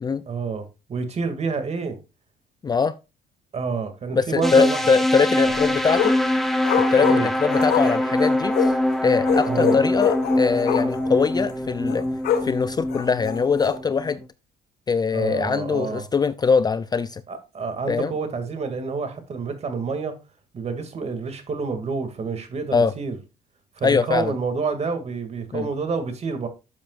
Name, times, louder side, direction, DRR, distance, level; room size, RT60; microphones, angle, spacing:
voice 1, 0.3-2.0 3.5-4.8 5.4-5.5 7.0-7.3 9.4-9.8 15.1-16.0 17.3-20.1 20.5-23.2 23.8-26.5, right 4 dB, 40° right, 2.3 m, -28 dB
voice 2, 2.6-3.0 4.1-6.2 6.9-8.7 9.0-12.1 12.4-14.2 14.9-17.2 17.9-18.1 22.7-22.9 23.8-24.3 25.5-25.7, left 5 dB, 25° left, 0.4 m, -22 dB
sound 1, 4.4-14.2, left 1 dB, ahead, 1.4 m, -24 dB
sound 2, 5.4-6.3 6.6-8.8 9.2-11.1 11.4-11.5 11.9-12.5 12.9-13.8, left 9 dB, 70° left, 2.4 m, -26 dB
12.5 x 7.3 x 2.5 m
cardioid pair, 110°, 17 cm